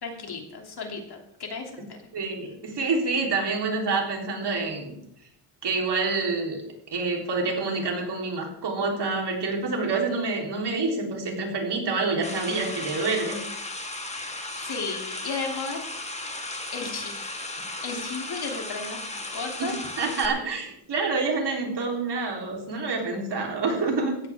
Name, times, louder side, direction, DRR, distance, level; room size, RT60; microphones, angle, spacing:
voice 1, 0.0-1.8 14.2-15.8 16.7-17.5 17.8-19.8, left 4 dB, 50° left, 2 dB, 3.0 m, -35 dB
voice 2, 2.1-5.0 5.6-6.6 6.9-13.4 19.6-24.2, right 3 dB, 50° right, 0 dB, 3.8 m, -27 dB
sound 1, 12.2-20.3, left 2 dB, 15° left, 1.7 m, -35 dB
17.0 x 14.0 x 3.6 m, 0.75 s
wide cardioid pair, 145°, 50 cm